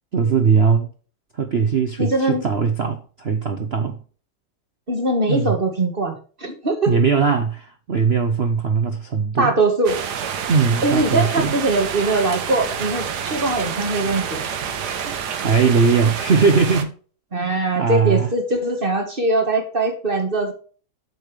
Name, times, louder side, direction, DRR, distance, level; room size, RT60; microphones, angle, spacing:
voice 1, 0.1-0.9 1.3-4.0 5.3-5.5 6.9-9.5 10.5-11.5 15.1-16.9 17.4-18.3, right 5 dB, 80° right, 0.5 m, -20 dB
voice 2, 2.0-2.4 4.9-6.9 9.4-10.0 10.8-14.4 17.3-20.5, right 2 dB, 30° right, 1.5 m, -21 dB
sound 1, 9.9-16.8, right 7 dB, 60° right, 1.4 m, -28 dB
8.2 x 7.0 x 3.2 m
omnidirectional pair, 2.2 m